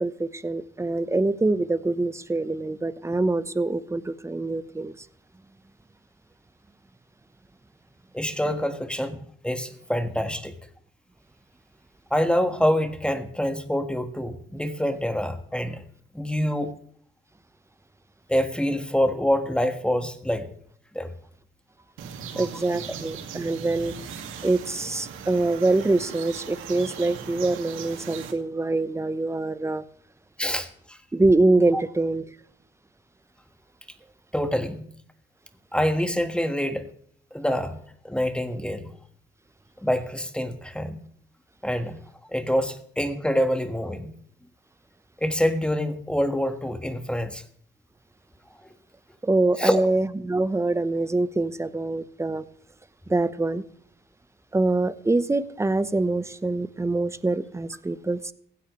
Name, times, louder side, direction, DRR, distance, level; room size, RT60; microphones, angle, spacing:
voice 1, 0.0-5.1 22.4-23.9 24.4-29.8 31.1-32.2 49.2-52.4 53.1-53.6 54.5-58.3, right 2 dB, 15° right, 0.8 m, -24 dB
voice 2, 8.1-9.2 9.4-10.5 12.1-15.8 16.1-16.7 18.3-20.5 20.9-21.1 22.3-22.5 30.4-31.0 31.7-31.8 34.3-34.9 35.7-36.9 37.3-37.8 38.0-38.9 39.8-41.0 41.6-42.0 42.3-44.1 45.2-47.4 49.6-49.8, equal, 5° left, 1.5 m, -26 dB
sound 1, 22.0-28.3, right 7 dB, 90° right, 2.0 m, -39 dB
16.0 x 15.5 x 3.1 m
cardioid pair, 90°, 20 cm